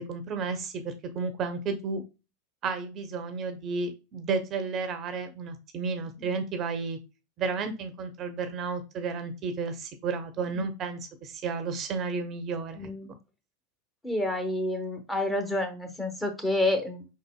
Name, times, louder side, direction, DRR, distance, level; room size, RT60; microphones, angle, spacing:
voice 1, 0.0-2.0 2.6-7.0 7.4-12.9, right 4 dB, 40° right, 8 dB, 0.8 m, -32 dB
voice 2, 12.7-13.1 14.0-17.1, left 1 dB, 10° left, 5 dB, 1.3 m, -29 dB
5.1 x 4.0 x 2.2 m, 0.28 s
hypercardioid pair, 85°, 0 cm